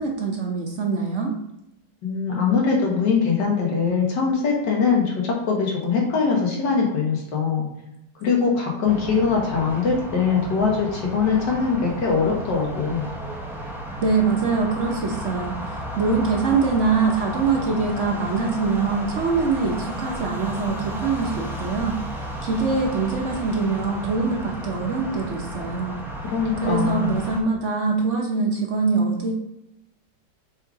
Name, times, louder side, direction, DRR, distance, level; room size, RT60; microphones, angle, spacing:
voice 1, 0.0-1.3 14.0-21.9 22.4-26.0 26.6-29.3, right 4 dB, 50° right, 0 dB, 1.1 m, -23 dB
voice 2, 2.0-7.7 8.2-13.1 26.2-27.2, left 5 dB, 85° left, -1 dB, 2.0 m, -22 dB
sound 1, 8.9-27.4, equal, 5° right, 0.4 m, -33 dB
5.4 x 3.7 x 4.7 m, 0.83 s
omnidirectional pair, 1.8 m